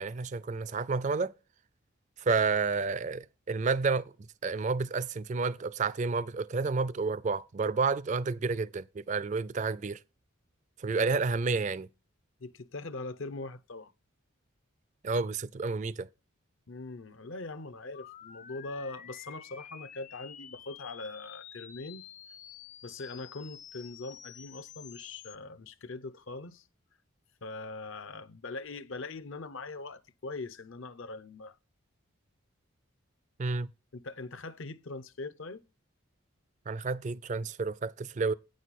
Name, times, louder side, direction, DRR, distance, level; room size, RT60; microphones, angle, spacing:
voice 1, 0.0-1.3 2.2-4.1 4.4-10.0 10.8-11.9 15.0-16.1 33.4-33.7 36.7-38.3, right 4 dB, 35° right, 0.3 m, -30 dB
voice 2, 12.4-13.9 16.7-22.0 22.8-26.6 27.4-31.6 33.9-35.6, left 3 dB, 65° left, 0.7 m, -41 dB
sound 1, 17.9-25.4, left 9 dB, 35° left, 0.4 m, -50 dB
9.5 x 6.3 x 4.2 m
head